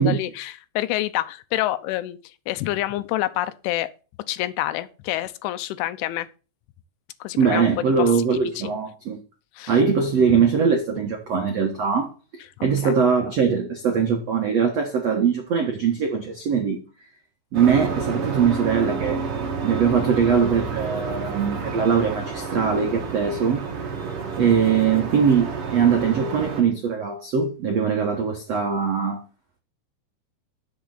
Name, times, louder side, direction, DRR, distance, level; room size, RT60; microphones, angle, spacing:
voice 1, 0.0-3.9 4.3-6.3 7.2-8.2 8.6-8.7 9.6-9.8 10.2-10.4 12.8-12.9, left 15 dB, 85° left, 3.2 m, -28 dB
voice 2, 7.4-9.2 9.7-12.1 12.6-16.8 17.5-19.2 19.6-23.6 24.4-29.2, right 6 dB, 90° right, 1.4 m, -21 dB
sound 1, 17.5-26.6, right 5 dB, 65° right, 1.4 m, -29 dB
11.0 x 6.9 x 4.1 m
omnidirectional pair, 5.5 m